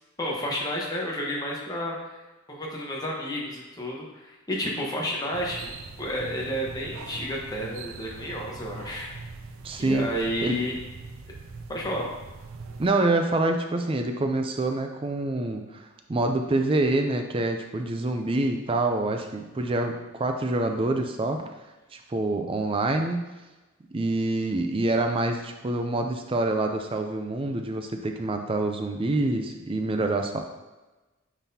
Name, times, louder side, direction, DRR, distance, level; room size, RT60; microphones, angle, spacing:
voice 1, 0.2-2.2 2.5-5.7 6.0-9.1 9.8-10.8 11.7-12.1, equal, 20° left, -3 dB, 1.1 m, -31 dB
sound 1, 5.3-12.9, right 4 dB, 75° right, 0.5 m, -42 dB
voice 2, 9.6-10.1 10.4-10.6 12.8-15.8 16.1-21.5 21.9-23.3 23.9-30.4, right 2 dB, 25° right, 5 dB, 0.4 m, -26 dB
9.0 x 4.0 x 2.8 m, 1.1 s
head